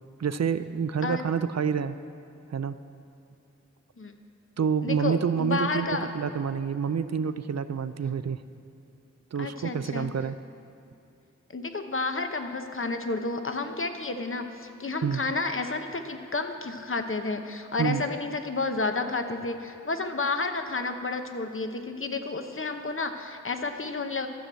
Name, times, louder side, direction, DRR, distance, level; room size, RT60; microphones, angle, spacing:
voice 1, 0.2-2.0 2.5-2.7 4.6-8.4 9.3-10.3 15.0-15.2 17.8-18.1, right 6 dB, 60° right, 12 dB, 0.5 m, -28 dB
voice 2, 4.8-6.1 9.4-10.1 11.5-24.3, left 3 dB, 45° left, 7 dB, 0.9 m, -31 dB
13.0 x 6.1 x 8.0 m, 2.5 s
wide cardioid pair, 45°, 29 cm